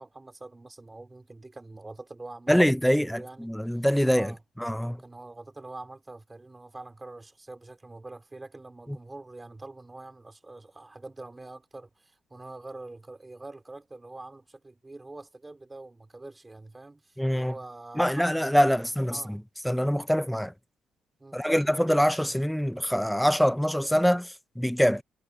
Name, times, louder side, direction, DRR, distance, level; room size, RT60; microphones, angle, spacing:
voice 1, 0.0-3.5 4.0-4.4 5.0-19.4 21.2-21.6, right 2 dB, 20° right, 3.9 m, -45 dB
voice 2, 2.5-4.3 4.6-5.0 17.2-17.5 18.0-19.4 19.6-20.5 21.3-25.0, equal, ahead, 0.9 m, -24 dB
cardioid pair, 90°, 0 cm